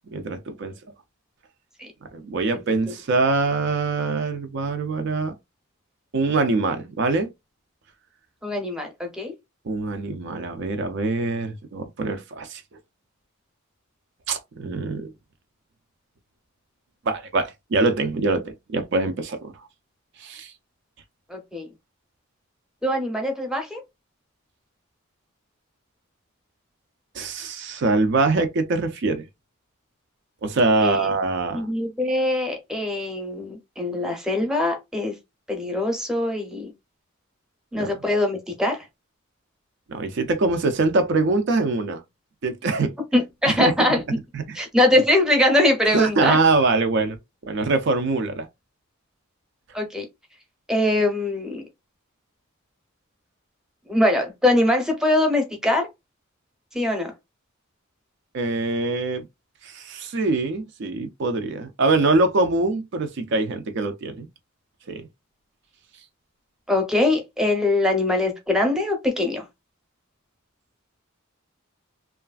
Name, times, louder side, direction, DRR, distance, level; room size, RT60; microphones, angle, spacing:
voice 1, 0.1-0.7 2.1-5.3 6.1-7.3 9.7-12.6 14.3-15.1 17.1-19.7 20.2-20.5 27.1-29.3 30.4-31.7 37.7-37.9 39.9-42.0 42.4-42.9 43.5-43.7 44.3-44.6 45.9-47.2 47.4-48.5 58.3-59.3 59.6-64.3 64.9-65.1, right 3 dB, 55° right, 0.4 m, -23 dB
voice 2, 8.4-9.3 21.3-21.7 22.8-23.8 30.8-31.1 31.5-35.1 35.5-36.7 37.7-38.8 43.1-44.0 44.5-46.4 49.7-50.0 50.7-51.6 53.9-55.9 56.7-57.1 66.7-69.4, left 1 dB, 5° right, 0.7 m, -22 dB
3.0 x 2.3 x 2.3 m
head